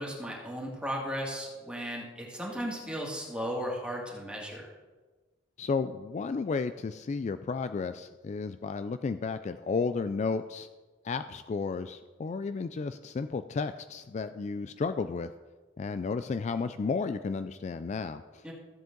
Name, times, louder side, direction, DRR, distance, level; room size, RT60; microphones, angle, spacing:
voice 1, 0.0-4.7 18.4-18.5, equal, 5° right, -2 dB, 2.2 m, -35 dB
voice 2, 5.6-10.7 11.0-15.3 15.8-18.5, left 4 dB, 40° left, 11 dB, 0.3 m, -33 dB
14.5 x 7.8 x 3.8 m, 1.3 s
head